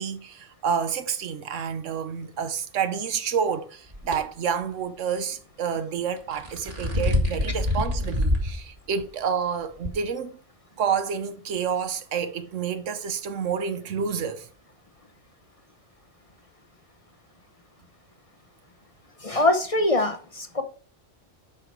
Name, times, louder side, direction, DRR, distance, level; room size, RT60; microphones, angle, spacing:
voice 1, 0.0-10.4 10.8-14.5, right 7 dB, 85° right, 1.2 m, -29 dB
sound 1, 3.9-4.2 6.2-8.5 9.0-9.1 9.8-9.9, left 1 dB, 45° right, 2.1 m, -25 dB
voice 2, 19.2-20.6, left 2 dB, 30° left, 0.9 m, -23 dB
8.9 x 5.8 x 4.6 m
omnidirectional pair, 1.2 m